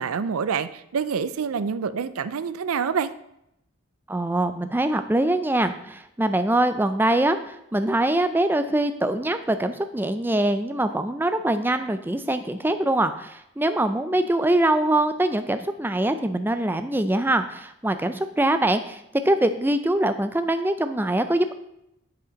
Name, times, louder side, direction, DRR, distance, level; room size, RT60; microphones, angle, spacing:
voice 1, 0.0-3.1, right 6 dB, 85° right, 14 dB, 0.4 m, -27 dB
voice 2, 4.1-21.5, right 1 dB, 10° right, 9 dB, 0.4 m, -23 dB
7.3 x 5.0 x 5.1 m, 0.80 s
head